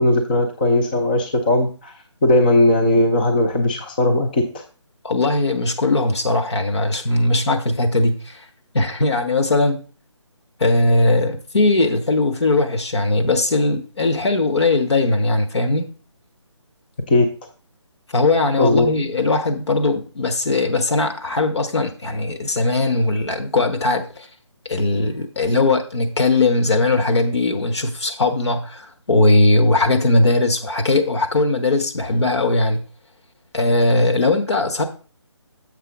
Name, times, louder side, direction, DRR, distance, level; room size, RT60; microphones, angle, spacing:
voice 1, 0.0-1.9 2.2-4.6 17.1-17.3 18.6-18.9, left 1 dB, 20° left, 0.4 m, -18 dB
voice 2, 5.0-8.4 8.7-9.8 10.6-15.9 18.1-24.3 24.6-32.8 33.5-34.8, left 2 dB, 60° left, 1.3 m, -19 dB
6.8 x 3.8 x 5.9 m
figure-of-eight pair, 155°, 16 cm